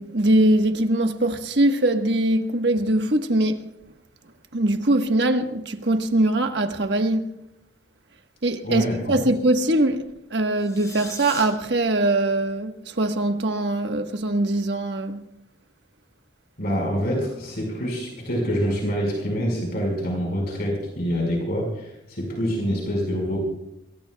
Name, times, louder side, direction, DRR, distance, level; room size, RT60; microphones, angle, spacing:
voice 1, 0.0-3.7 4.5-7.3 8.4-15.3, right 1 dB, 65° right, 1.3 m, -22 dB
voice 2, 8.6-8.9 16.6-23.4, equal, 55° left, 4.8 m, -26 dB
sound 1, 10.6-11.4, left 3 dB, 20° left, 6.3 m, -39 dB
26.5 x 22.0 x 2.3 m
head